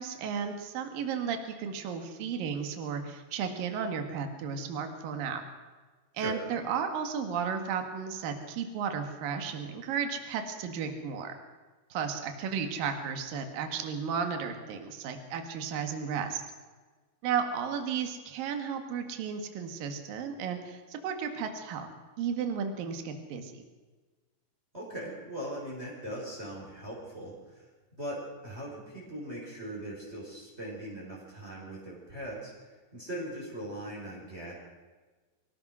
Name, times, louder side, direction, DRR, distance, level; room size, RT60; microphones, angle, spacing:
voice 1, 0.0-5.4 6.2-11.3 11.9-16.4 17.2-21.9 22.2-23.6, right 6 dB, 65° right, 6 dB, 3.4 m, -34 dB
voice 2, 24.7-27.6 27.9-32.5 32.9-34.5, right 1 dB, 15° right, -4 dB, 5.8 m, -40 dB
25.0 x 17.5 x 6.3 m, 1.3 s
omnidirectional pair, 4.5 m